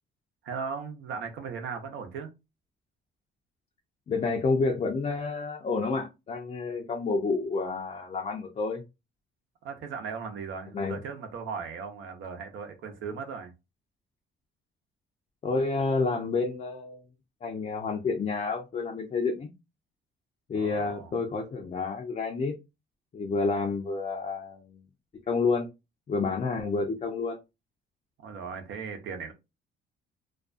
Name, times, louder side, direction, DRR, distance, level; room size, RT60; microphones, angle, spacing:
voice 1, 0.4-2.3 9.6-13.5 20.6-21.1 28.2-29.3, right 5 dB, 70° right, 0.8 m, -37 dB
voice 2, 4.1-8.8 10.7-11.0 15.4-17.0 17.4-19.5 20.5-22.5 23.1-24.8 25.3-25.7 26.1-27.4, left 4 dB, 35° left, 0.5 m, -29 dB
2.5 x 2.2 x 2.4 m
cardioid pair, 95°, 21 cm